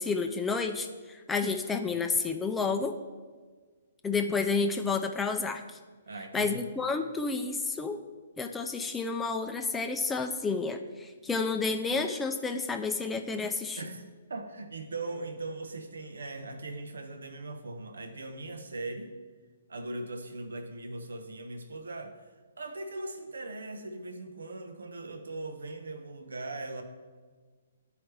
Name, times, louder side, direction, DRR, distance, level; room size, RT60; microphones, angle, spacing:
voice 1, 0.0-3.0 4.0-5.6 6.3-8.0 8.4-13.8, left 4 dB, 10° left, 5 dB, 0.4 m, -30 dB
voice 2, 6.1-6.6 13.8-19.1 19.7-22.2 22.6-26.8, right 2 dB, 85° right, 7 dB, 0.8 m, -39 dB
12.0 x 4.8 x 3.3 m, 1.5 s
hypercardioid pair, 135°, 0 cm